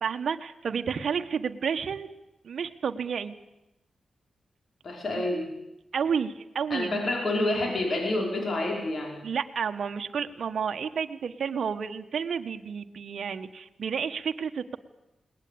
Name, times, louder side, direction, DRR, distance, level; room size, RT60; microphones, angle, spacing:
voice 1, 0.0-2.1 2.4-3.3 5.1-5.2 5.9-7.1 9.2-14.8, right 6 dB, 70° right, 6 dB, 1.2 m, -31 dB
voice 2, 4.8-5.5 6.7-9.2, left 2 dB, 60° left, 1 dB, 5.3 m, -28 dB
21.5 x 19.0 x 8.6 m, 0.91 s
supercardioid pair, 45°, 0 cm